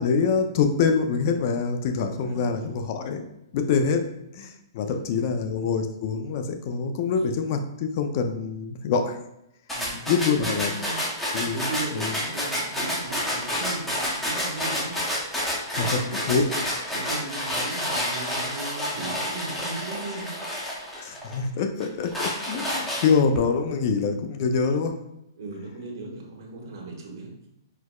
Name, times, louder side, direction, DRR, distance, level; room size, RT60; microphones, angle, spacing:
voice 1, 0.0-3.2 3.5-4.0 4.3-9.2 10.1-10.7 11.3-11.6 11.9-12.1 15.8-16.0 16.3-16.5 21.0-25.0, left 5 dB, 45° left, 7 dB, 0.4 m, -25 dB
voice 2, 2.2-2.7 4.8-5.4 9.7-11.0 11.5-15.0 15.7-16.4 16.9-20.4 25.4-27.5, right 2 dB, 65° right, 0 dB, 1.0 m, -37 dB
sound 1, 9.7-21.4 21.8-23.4, equal, 5° left, 0.7 m, -29 dB
4.5 x 2.2 x 2.3 m, 0.83 s
hypercardioid pair, 140°, 2 cm